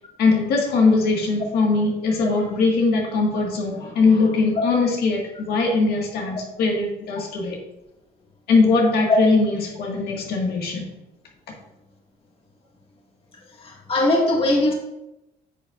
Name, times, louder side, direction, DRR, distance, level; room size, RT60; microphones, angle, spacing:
voice 1, 0.2-7.6 8.5-10.9, left 3 dB, 70° left, -1 dB, 1.7 m, -21 dB
voice 2, 13.6-14.7, left 2 dB, 35° left, -1 dB, 1.8 m, -20 dB
9.9 x 6.5 x 2.4 m, 0.92 s
cardioid pair, 110°, 17 cm